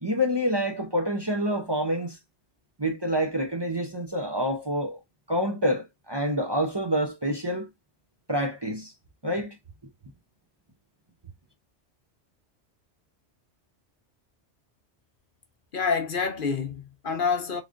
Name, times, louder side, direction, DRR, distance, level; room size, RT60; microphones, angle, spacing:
voice 1, 0.0-2.2 2.8-5.0 5.3-7.7 8.3-8.9 9.2-9.6, equal, 25° right, 0.7 m, -27 dB
voice 2, 15.7-17.6, left 5 dB, 50° left, 1.0 m, -27 dB
3.7 x 3.2 x 2.4 m
omnidirectional pair, 1.2 m